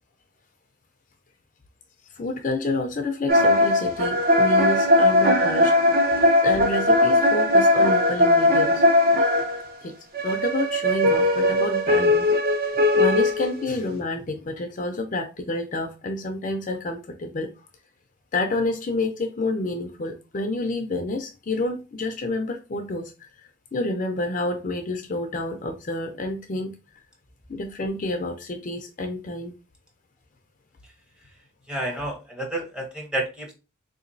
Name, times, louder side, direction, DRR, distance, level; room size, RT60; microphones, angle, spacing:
voice 1, 2.2-8.8 9.8-9.9 10.2-12.3 12.6-12.7 13.0-17.5 18.3-23.3 23.7-26.7 27.5-29.5, left 2 dB, 40° left, 0.4 m, -29 dB
sound 1, 3.3-9.6 10.1-13.7, left 1 dB, 45° right, 0.6 m, -19 dB
voice 2, 31.7-33.5, right 1 dB, 5° right, 0.7 m, -30 dB
3.8 x 2.9 x 2.6 m
head